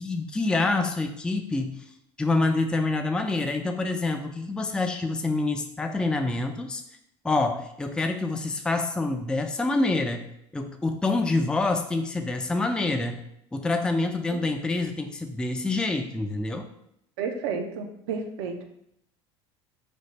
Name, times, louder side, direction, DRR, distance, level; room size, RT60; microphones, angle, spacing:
voice 1, 0.0-1.8 2.2-6.8 7.2-10.2 10.5-13.2 13.5-16.7, left 3 dB, 5° left, 5 dB, 0.3 m, -26 dB
voice 2, 17.2-18.6, right 5 dB, 80° right, 4 dB, 0.6 m, -31 dB
3.4 x 2.0 x 3.8 m, 0.75 s
hypercardioid pair, 80°, 14 cm